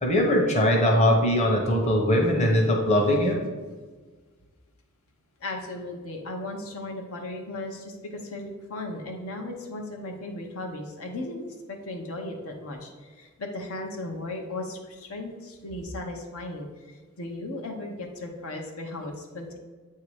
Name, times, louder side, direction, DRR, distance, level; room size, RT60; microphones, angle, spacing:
voice 1, 0.0-3.4, left 1 dB, 30° left, 1 dB, 0.9 m, -21 dB
voice 2, 5.4-19.6, left 2 dB, 75° left, 2 dB, 0.8 m, -36 dB
8.3 x 2.8 x 4.8 m, 1.4 s
head